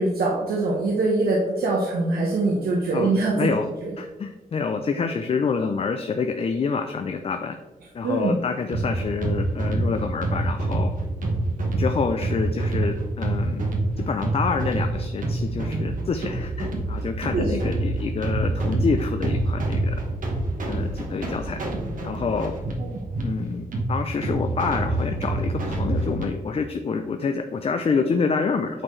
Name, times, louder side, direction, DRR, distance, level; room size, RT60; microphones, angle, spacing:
voice 1, 0.0-3.5 3.8-3.9 8.0-8.3 17.3-17.5 22.8-23.0, right 2 dB, 85° right, -3 dB, 1.1 m, -23 dB
voice 2, 3.4-3.7 4.0-7.5 7.9-10.9 11.8-13.7 14.0-20.0 20.7-21.6 22.0-22.5 23.2-28.8, left 5 dB, 40° left, 6 dB, 0.4 m, -27 dB
sound 1, 8.7-26.3, right 2 dB, 60° right, 1.3 m, -27 dB
8.7 x 4.5 x 3.2 m, 1.2 s
wide cardioid pair, 140°, 15 cm